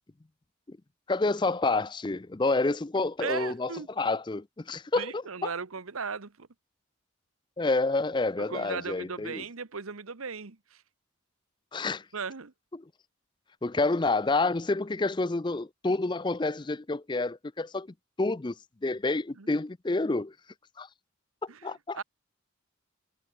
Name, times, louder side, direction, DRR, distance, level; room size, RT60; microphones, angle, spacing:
voice 1, 1.1-5.2 7.6-9.4 11.7-12.0 12.7-12.8 13.6-17.9 18.2-18.5 18.8-20.3 20.8-20.9 21.4-22.0, left 3 dB, 20° left, 0.4 m, -28 dB
voice 2, 3.2-3.9 5.0-6.5 8.5-10.8 12.1-12.5 19.4-19.6 21.5-22.0, right 5 dB, 90° right, 1.2 m, -37 dB
head